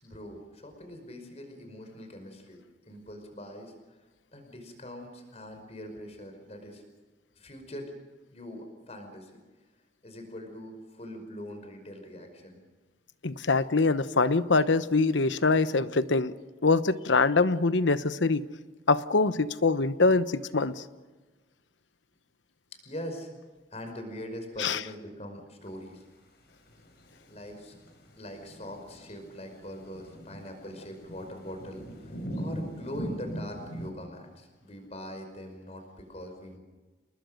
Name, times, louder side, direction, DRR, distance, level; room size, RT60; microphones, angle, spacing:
voice 1, 0.0-4.0 4.3-6.8 7.3-7.9 8.3-9.4 10.0-12.6 22.8-23.3 23.7-26.0 27.3-27.8 28.2-36.6, equal, 35° left, 5 dB, 5.3 m, -42 dB
voice 2, 13.2-16.3 16.6-18.4 18.9-20.8 24.6-24.8, left 3 dB, 80° left, 13 dB, 1.0 m, -24 dB
sound 1, 26.7-33.9, equal, 60° left, 5.9 m, -41 dB
29.0 x 20.5 x 6.6 m, 1.3 s
head